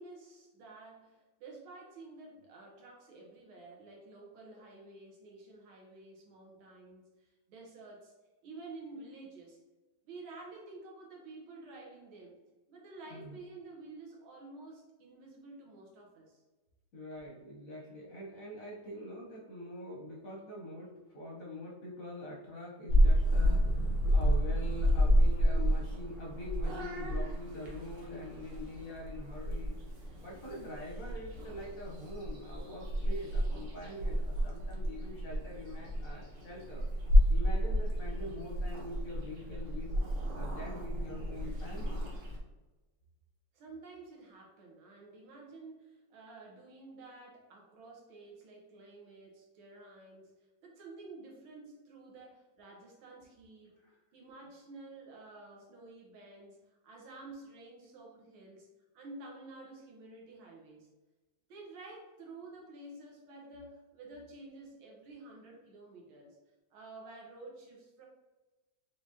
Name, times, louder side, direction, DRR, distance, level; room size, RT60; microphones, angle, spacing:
voice 1, 0.0-8.1 8.4-9.6 10.1-12.4 12.7-16.4 43.5-50.3 50.6-53.7 54.1-58.7 58.9-60.9 61.5-66.4 66.7-68.1, right 2 dB, 90° right, -2 dB, 1.9 m, -51 dB
voice 2, 16.9-23.8 24.1-29.8 30.2-36.8 37.3-39.9 40.3-42.0 53.8-53.9, left 1 dB, 55° left, -3 dB, 1.0 m, -44 dB
Purr / Meow, 22.9-42.4, equal, 55° right, 1.2 m, -30 dB
4.9 x 3.5 x 2.7 m, 1.2 s
omnidirectional pair, 2.2 m